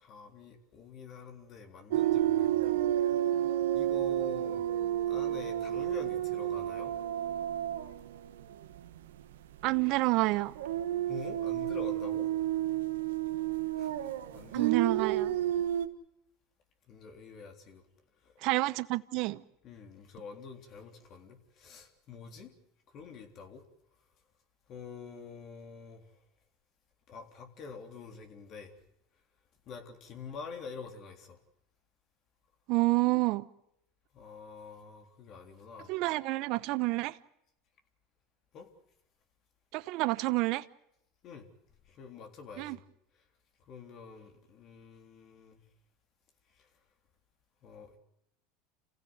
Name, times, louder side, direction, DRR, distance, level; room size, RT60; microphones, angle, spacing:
voice 1, 0.0-2.9 3.4-4.8 5.1-7.0 11.0-12.3 13.7-14.8 16.9-17.9 18.2-18.5 19.6-22.5 22.9-23.6 24.7-26.2 27.1-28.7 29.7-31.4 34.1-36.0 38.5-38.7 41.2-41.5 41.9-42.8 43.1-43.2 43.6-45.6 46.5-46.7 47.6-48.0, left 5 dB, 50° left, 3.6 m, -47 dB
sound 1, 1.9-9.3 9.6-9.8 10.5-15.9, right 12 dB, 90° right, 1.5 m, -31 dB
voice 2, 9.6-10.5 14.5-15.3 18.4-19.4 32.7-33.5 35.9-37.2 39.7-40.6 42.6-42.8, right 21 dB, 60° right, 0.8 m, -28 dB
28.5 x 16.0 x 8.0 m
supercardioid pair, 100°, 0 cm